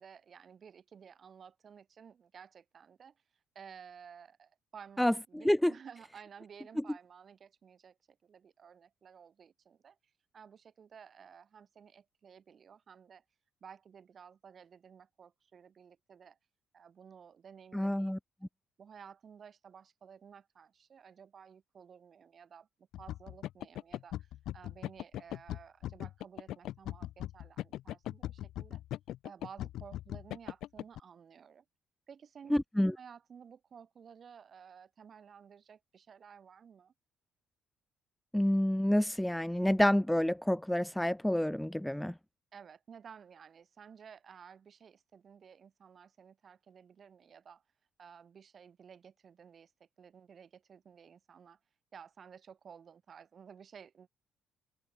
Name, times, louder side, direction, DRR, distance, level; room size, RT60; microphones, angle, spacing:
voice 1, 0.0-3.2 3.5-10.0 10.3-13.2 13.6-16.4 16.7-18.2 18.4-18.5 18.8-22.7 23.0-28.8 29.2-31.6 32.1-36.9 42.5-47.6 48.0-51.6 51.9-54.1, right 7 dB, 45° right, 6.0 m, -54 dB
voice 2, 17.7-18.2 32.5-32.9 38.3-42.1, left 1 dB, 5° left, 0.4 m, -28 dB
sound 1, 22.9-31.0, left 13 dB, 75° left, 1.0 m, -40 dB
cardioid pair, 115°, 0 cm